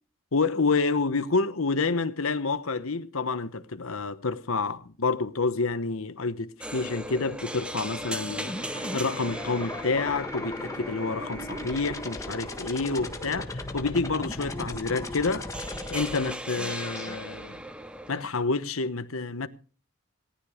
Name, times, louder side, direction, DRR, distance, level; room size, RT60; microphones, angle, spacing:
voice 1, 0.3-8.5 8.9-15.5 15.9-17.6 18.1-19.5, left 3 dB, 75° left, 1.0 m, -28 dB
sound 1, 6.6-18.2, equal, 5° right, 0.8 m, -39 dB
sound 2, 7.8-17.2, left 2 dB, 15° left, 1.5 m, -38 dB
sound 3, 8.6-13.1, right 1 dB, 75° right, 6.1 m, -46 dB
18.0 x 11.5 x 5.0 m
head